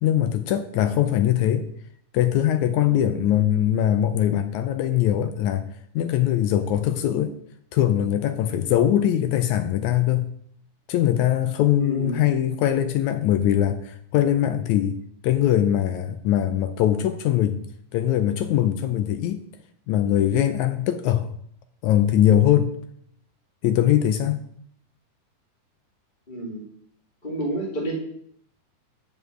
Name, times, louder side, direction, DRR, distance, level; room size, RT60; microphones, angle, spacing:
voice 1, 0.0-1.7 2.1-5.7 6.0-7.4 7.7-10.3 10.9-15.0 15.2-17.6 17.9-19.4 19.9-21.3 21.8-22.7 23.6-24.4, left 11 dB, 80° left, 1.7 m, -21 dB
voice 2, 11.8-12.2 26.3-26.6 27.2-28.0, right 1 dB, 20° left, 1.4 m, -29 dB
9.6 x 5.3 x 7.7 m
omnidirectional pair, 3.8 m